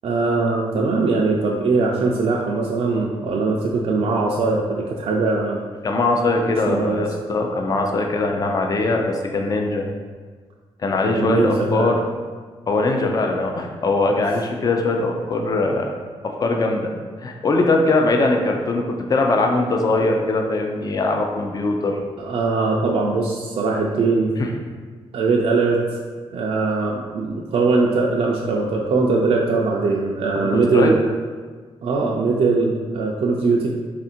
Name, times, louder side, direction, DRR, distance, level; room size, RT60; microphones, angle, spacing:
voice 1, 0.0-5.6 6.7-7.1 11.1-12.0 22.2-24.3 25.1-25.8 26.3-31.0 31.8-33.7, right 3 dB, 60° right, -2 dB, 0.4 m, -21 dB
voice 2, 5.8-9.9 10.8-12.0 12.7-15.9 16.2-22.0 24.4-24.5 30.4-30.9, left 2 dB, 35° left, 2 dB, 0.4 m, -21 dB
3.4 x 2.5 x 4.2 m, 1.5 s
wide cardioid pair, 120°, 11 cm